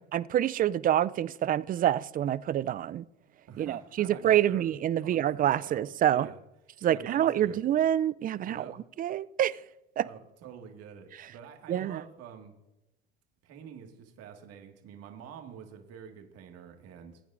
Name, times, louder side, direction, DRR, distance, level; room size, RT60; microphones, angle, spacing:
voice 1, 0.1-3.0 3.6-6.3 6.8-8.6 9.0-9.5 10.0-10.1 11.7-12.0, right 11 dB, 30° right, 0.4 m, -27 dB
voice 2, 3.5-4.7 5.0-6.4 6.9-7.6 8.4-8.9 10.0-12.5 13.4-17.2, right 7 dB, 55° right, 1.8 m, -48 dB
20.0 x 9.1 x 2.5 m
hypercardioid pair, 75°, 30 cm